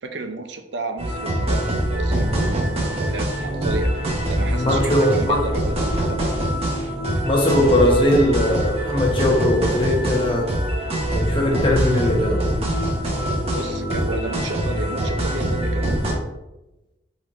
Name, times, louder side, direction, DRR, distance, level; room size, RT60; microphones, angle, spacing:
voice 1, 0.0-2.3 3.1-3.9 4.3-6.2 13.5-16.3, right 2 dB, 70° right, 6 dB, 0.5 m, -32 dB
sound 1, 1.0-16.1, right 1 dB, 35° right, 1.0 m, -24 dB
voice 2, 4.5-5.4 7.2-10.5 11.1-12.4, left 1 dB, 30° left, -1 dB, 0.9 m, -19 dB
4.3 x 4.3 x 2.5 m, 0.98 s
head